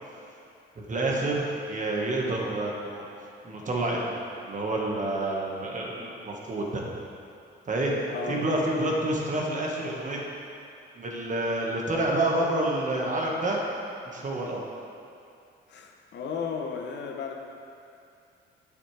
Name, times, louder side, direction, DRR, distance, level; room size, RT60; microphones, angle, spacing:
voice 1, 0.8-3.0 3.4-4.2 4.4-6.9 7.7-7.9 8.3-10.2 10.9-13.6 14.0-14.6, right 2 dB, 40° right, -2 dB, 1.6 m, -28 dB
voice 2, 8.1-8.5 15.7-17.4, left 5 dB, 60° left, 2 dB, 0.9 m, -34 dB
8.8 x 8.4 x 3.4 m, 2.6 s
cardioid pair, 90°, 20 cm